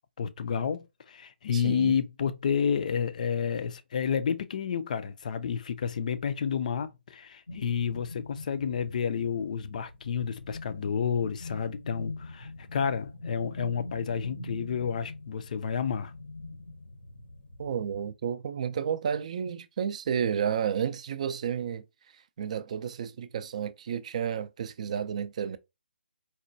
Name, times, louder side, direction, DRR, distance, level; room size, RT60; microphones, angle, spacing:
voice 1, 0.2-16.1, left 7 dB, 40° left, 0.4 m, -30 dB
voice 2, 1.5-1.9 17.6-21.8 22.4-25.6, right 8 dB, 40° right, 0.3 m, -31 dB
sound 1, 7.5-18.1, left 2 dB, 85° left, 0.8 m, -44 dB
4.1 x 2.1 x 2.6 m
figure-of-eight pair, 145°, 6 cm